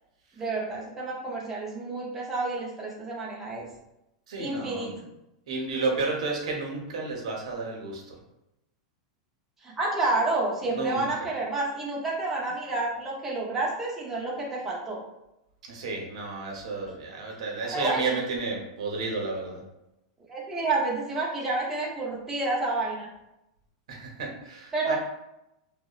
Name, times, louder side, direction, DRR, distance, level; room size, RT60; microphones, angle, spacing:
voice 1, 0.4-3.7 4.4-5.0 9.6-15.0 17.6-18.1 20.3-23.1 24.7-24.9, right 2 dB, 10° right, -4 dB, 0.4 m, -29 dB
voice 2, 4.3-4.9 5.5-8.2 10.7-11.3 15.7-19.6 23.9-24.9, right 3 dB, 85° right, 0 dB, 0.7 m, -32 dB
2.7 x 2.0 x 2.3 m, 0.89 s
supercardioid pair, 160°, 3 cm